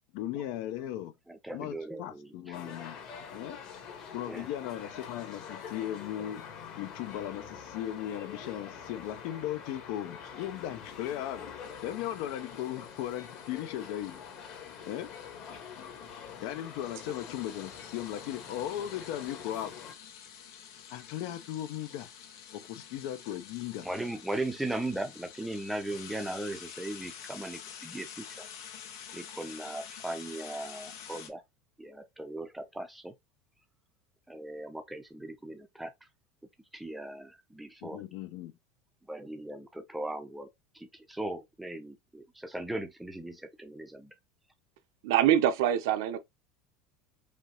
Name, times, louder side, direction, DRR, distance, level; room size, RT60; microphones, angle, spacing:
voice 1, 0.1-1.1 1.5-3.0 3.3-3.6 4.1-6.4 6.7-11.4 11.8-14.1 14.9-15.1 16.4-19.7 20.9-22.1 22.5-23.9 37.8-38.5, left 12 dB, 50° left, 0.7 m, -37 dB
voice 2, 1.3-2.8 4.2-4.5 23.8-28.5 29.1-31.4 31.8-33.1 34.3-35.9 36.7-38.0 39.1-40.5 40.7-44.1, right 1 dB, 5° right, 0.6 m, -38 dB
London Underground- Wembley Park station concourse, 2.5-19.9, left 7 dB, 35° left, 1.4 m, -45 dB
sound 1, 11.6-31.3, left 8 dB, 80° left, 1.3 m, -49 dB
voice 3, 45.0-46.2, right 10 dB, 70° right, 0.8 m, -24 dB
5.1 x 2.8 x 3.0 m
cardioid pair, 175°, 2 cm